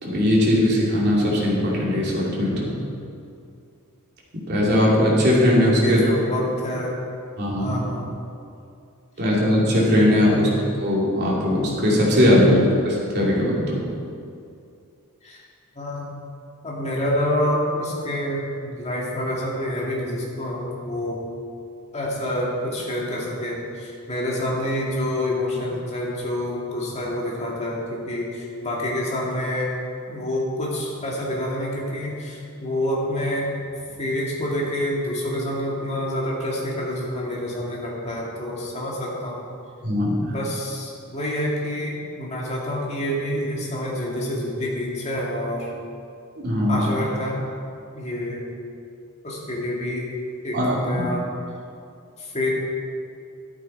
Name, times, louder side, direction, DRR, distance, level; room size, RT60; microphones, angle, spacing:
voice 1, 0.0-2.7 4.3-6.0 7.4-7.8 9.2-10.5 10.8-12.6 12.8-13.8 39.8-40.2 46.4-46.8 50.5-51.1, left 1 dB, 50° right, -5 dB, 2.8 m, -19 dB
voice 2, 5.8-6.9 7.6-8.1 10.2-10.5 15.2-15.4 15.8-16.1 16.6-21.2 21.9-29.7 30.1-33.5 34.0-39.4 40.3-45.7 46.7-47.4 47.9-48.4 49.2-50.1 50.4-51.2 52.2-52.5, left 1 dB, 30° left, -3 dB, 2.2 m, -27 dB
12.0 x 8.8 x 4.6 m, 2.5 s
head